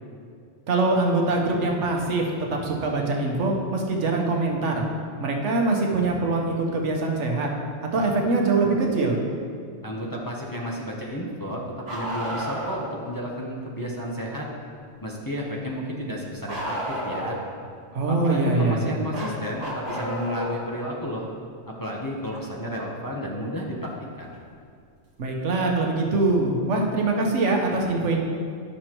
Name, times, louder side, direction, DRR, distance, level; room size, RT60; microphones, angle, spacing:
voice 1, 0.7-4.8 5.2-7.5 7.9-9.2 17.9-19.0 25.2-28.2, right 3 dB, 80° right, 0 dB, 1.3 m, -23 dB
voice 2, 9.8-14.5 15.0-17.4 18.1-21.3 21.7-24.3, equal, 20° left, -3 dB, 0.8 m, -32 dB
Bark, 11.8-12.9 16.5-17.5 19.1-20.6 22.3-22.4 24.3-24.4 25.5-25.6, equal, 60° right, 1.5 m, -31 dB
11.5 x 6.4 x 3.0 m, 2.2 s
omnidirectional pair, 1.2 m